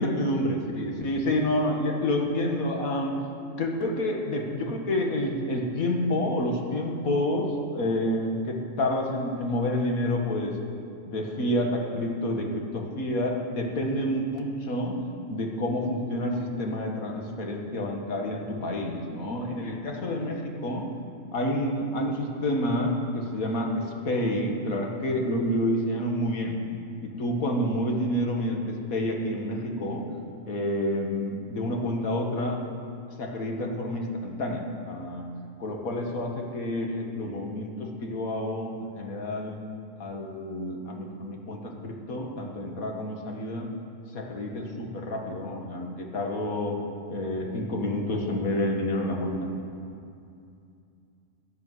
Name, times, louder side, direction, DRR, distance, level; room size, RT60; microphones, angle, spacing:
voice 1, 0.0-3.1 3.6-10.6 11.1-15.0 15.3-20.9 21.3-26.6 27.0-30.0 30.5-32.6 33.2-35.2 35.6-39.6 40.0-43.7 44.1-46.8 47.1-49.5, left 1 dB, 85° left, 1 dB, 2.2 m, -29 dB
17.0 x 11.0 x 7.7 m, 2.5 s
omnidirectional pair, 1.4 m